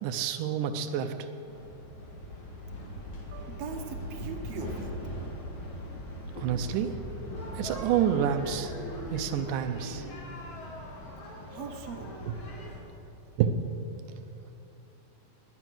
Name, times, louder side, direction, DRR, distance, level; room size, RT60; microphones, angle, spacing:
voice 1, 0.0-1.3 6.4-6.9 7.6-8.7 9.1-10.1 13.4-13.5, right 9 dB, 85° right, 7 dB, 2.3 m, -28 dB
sound 1, 1.5-12.8, equal, 45° left, 2.5 m, -40 dB
voice 2, 3.3-4.9 11.5-12.1, right 5 dB, 60° right, 3 dB, 2.1 m, -40 dB
19.5 x 9.6 x 6.3 m, 2.8 s
omnidirectional pair, 3.6 m